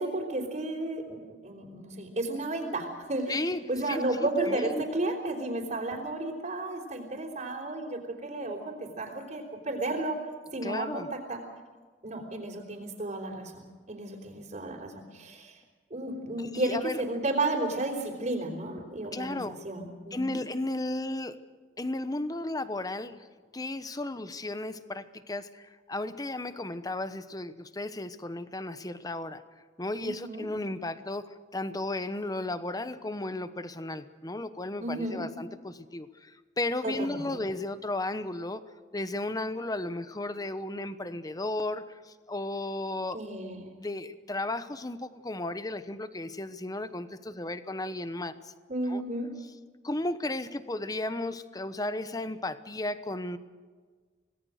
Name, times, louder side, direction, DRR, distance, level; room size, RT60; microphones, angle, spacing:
voice 1, 0.0-3.3 3.7-10.2 10.5-11.4 12.0-15.5 15.9-20.4 30.0-30.5 34.8-35.3 36.8-37.2 43.1-43.7 48.7-49.3, right 2 dB, 40° right, -4 dB, 4.0 m, -33 dB
voice 2, 3.3-4.8 10.6-11.1 16.4-17.0 19.1-19.6 20.1-21.4 21.8-23.3 23.5-29.4 29.8-38.6 38.9-43.2 43.8-48.5 48.9-49.0 49.8-53.4, left 2 dB, 20° left, 12 dB, 1.0 m, -34 dB
26.0 x 18.5 x 6.5 m, 1.5 s
head